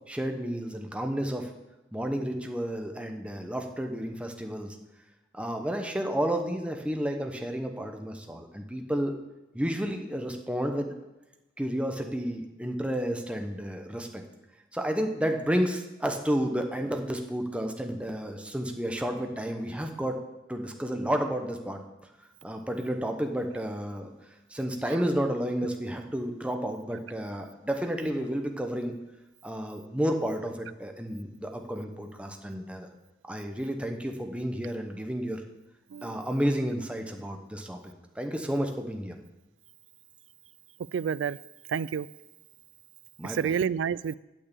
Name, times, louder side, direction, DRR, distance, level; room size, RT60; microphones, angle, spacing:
voice 1, 0.1-1.5 1.9-4.8 5.3-9.1 9.5-10.9 11.6-14.2 14.7-20.2 20.5-21.8 22.4-24.1 24.5-28.9 29.4-32.9 33.3-35.4 36.0-37.8 38.1-39.2 43.2-43.6, equal, 5° right, 4 dB, 1.0 m, -31 dB
voice 2, 40.9-41.4 41.7-42.1 43.2-44.2, right 7 dB, 75° right, 19 dB, 0.3 m, -29 dB
8.9 x 6.5 x 8.3 m, 1.0 s
head